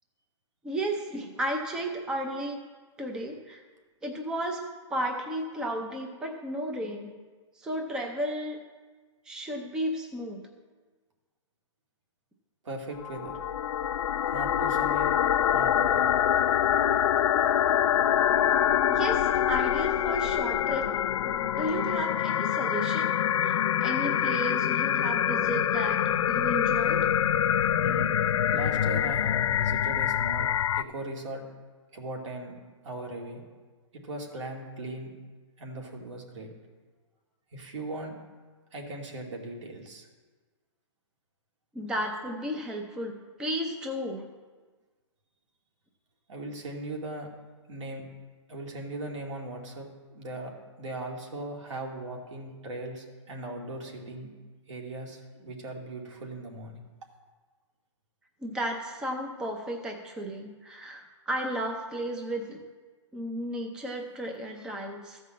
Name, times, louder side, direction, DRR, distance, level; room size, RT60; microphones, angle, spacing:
voice 1, 0.6-2.6 3.0-3.6 4.0-4.6 4.9-7.1 7.6-8.6 9.2-10.4 18.9-20.9 21.2-27.1 41.7-44.3 58.4-62.6 63.1-65.2, right 1 dB, 5° right, 3 dB, 0.5 m, -34 dB
voice 2, 12.6-13.4 14.3-15.1 15.5-16.2 27.8-28.2 28.5-30.5 30.7-31.5 31.9-32.6 32.8-33.4 33.9-35.1 35.6-36.5 37.5-38.2 38.7-40.1 46.3-47.3 47.7-48.1 48.5-54.3 54.7-56.8, right 2 dB, 70° right, 1 dB, 2.6 m, -38 dB
sound 1, 13.0-30.8, left 10 dB, 80° left, 0.4 m, -25 dB
14.0 x 5.4 x 7.5 m, 1.4 s
hypercardioid pair, 165°, 16 cm